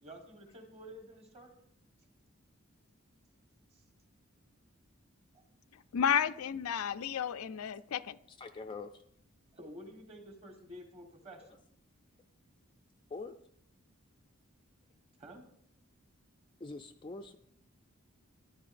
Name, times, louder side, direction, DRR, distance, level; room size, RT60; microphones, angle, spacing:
voice 1, 0.0-1.5 3.7-3.8 5.3-5.4 9.5-11.6 15.2-15.5, equal, 30° right, 3 dB, 1.3 m, -50 dB
voice 2, 5.9-8.2, left 8 dB, 85° left, 12 dB, 0.4 m, -32 dB
voice 3, 8.3-9.0 11.4-11.6 13.1-13.4 16.6-17.4, left 3 dB, 20° left, 4 dB, 0.3 m, -44 dB
13.5 x 10.0 x 2.5 m, 0.72 s
head